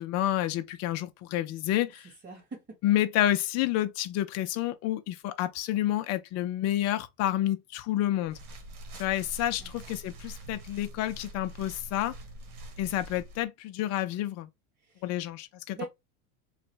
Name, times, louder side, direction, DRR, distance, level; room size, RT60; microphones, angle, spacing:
voice 1, 0.0-2.1 2.8-8.4 9.0-12.1 12.8-14.5 15.0-15.8, left 13 dB, 40° left, 0.6 m, -29 dB
voice 2, 2.2-2.8 9.6-9.8 14.8-15.3 15.7-15.9, right 3 dB, 25° right, 2.3 m, -43 dB
sound 1, 8.2-13.4, right 1 dB, 80° right, 1.4 m, -45 dB
3.8 x 2.5 x 3.2 m
supercardioid pair, 135°, 43 cm